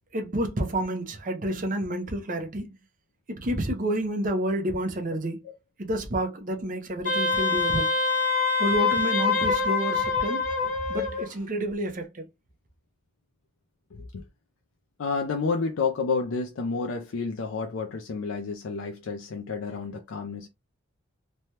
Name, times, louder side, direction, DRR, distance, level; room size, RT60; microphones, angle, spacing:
voice 1, 0.1-2.7 3.3-5.4 5.8-7.9 8.6-10.5 10.9-12.3, right 1 dB, 40° right, 0.6 m, -29 dB
Wind instrument woodwind instrument, 7.0-11.3, left 4 dB, 35° left, 0.9 m, -25 dB
voice 2, 13.9-14.2 15.0-20.5, left 4 dB, 70° left, 0.4 m, -30 dB
3.2 x 2.2 x 2.7 m
head